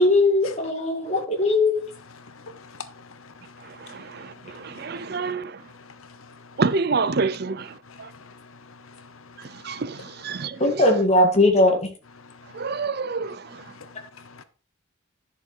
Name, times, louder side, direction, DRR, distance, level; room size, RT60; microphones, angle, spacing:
voice 1, 0.0-1.8 10.6-11.8, left 2 dB, 30° left, 2.1 m, -19 dB
voice 2, 2.1-5.3 5.6-6.6 7.7-10.4 12.2-12.9 13.2-14.4, left 4 dB, 80° left, 1.0 m, -47 dB
voice 3, 3.8-5.6 6.6-7.7 8.0-8.1 9.6-10.8 12.5-13.4, right 4 dB, 50° right, 0.5 m, -27 dB
11.0 x 6.7 x 4.5 m
head